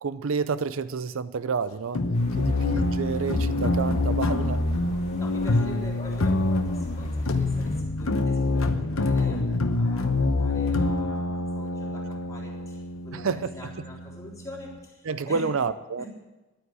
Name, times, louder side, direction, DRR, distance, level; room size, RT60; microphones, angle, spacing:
voice 1, 0.0-2.0 2.4-4.6 13.1-13.5 15.1-16.0, right 5 dB, 70° right, 14 dB, 0.5 m, -29 dB
sound 1, 2.0-14.8, left 2 dB, 85° left, 1.0 m, -26 dB
sound 2, 2.1-7.8, left 1 dB, 35° left, 2.1 m, -42 dB
voice 2, 2.4-2.7 5.2-15.5 16.0-16.1, left 2 dB, 15° left, -4 dB, 3.7 m, -44 dB
11.5 x 9.4 x 8.2 m, 1.2 s
head